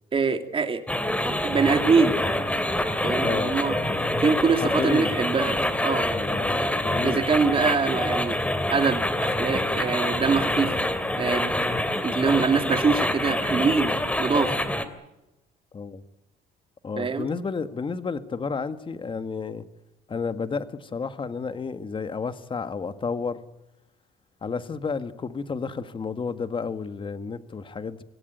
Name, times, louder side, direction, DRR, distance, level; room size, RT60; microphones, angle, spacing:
voice 1, 0.1-0.8 1.2-2.1 3.0-3.8 4.2-5.6 5.8-6.1 7.0-8.4 8.7-10.7 11.2-11.5 12.0-14.5 17.0-17.3, right 5 dB, 30° right, 7 dB, 2.8 m, -24 dB
sound 1, 0.9-14.8, left 1 dB, 10° left, 2.7 m, -26 dB
voice 2, 3.2-4.2 4.5-5.1 6.1-7.3 15.7-16.0 16.8-19.6 20.1-23.4 24.4-28.0, left 5 dB, 30° left, 11 dB, 1.8 m, -31 dB
26.0 x 17.5 x 9.3 m, 0.98 s
cardioid pair, 110°, 17 cm